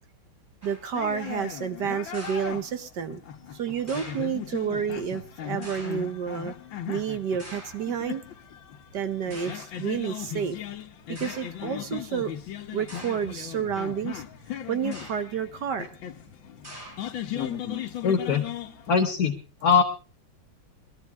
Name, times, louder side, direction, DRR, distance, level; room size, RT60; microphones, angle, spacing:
sound 1, 0.6-1.0 2.1-3.0 3.9-4.4 5.6-6.2 7.4-7.9 8.7-8.8 9.3-9.8 10.6-10.7 11.2-11.6 12.9-13.4 14.8-15.4 16.6-17.3, equal, 30° right, 7.2 m, -44 dB
voice 1, 0.6-3.2 3.5-6.5 6.9-8.2 8.9-10.6 11.2-12.3 12.7-14.2 14.7-15.9, right 7 dB, 60° right, 10 dB, 1.5 m, -30 dB
sound 2, 0.9-19.1, left 10 dB, 70° left, 1.8 m, -38 dB
voice 2, 17.3-18.4 18.9-19.3 19.6-19.8, left 6 dB, 50° left, 2 dB, 1.4 m, -23 dB
21.5 x 12.5 x 3.5 m, 0.33 s
omnidirectional pair, 2.2 m